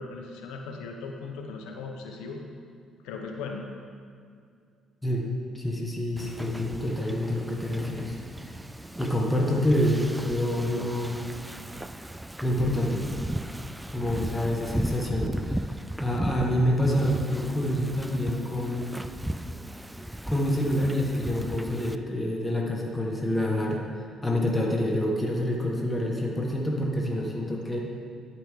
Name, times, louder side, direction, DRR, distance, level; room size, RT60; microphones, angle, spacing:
voice 1, 0.0-2.4 3.0-3.7, left 4 dB, 80° left, 2 dB, 1.0 m, -38 dB
voice 2, 5.5-8.2 8.4-8.6 8.9-11.2 12.4-13.0 13.9-15.7 16.0-19.0 20.3-23.8 24.2-27.8, left 1 dB, 10° left, -2 dB, 1.5 m, -27 dB
Wind / Ocean, 6.2-21.9, right 1 dB, 10° right, 0.3 m, -36 dB
12.0 x 5.1 x 3.7 m, 2.3 s
supercardioid pair, 65°, 0 cm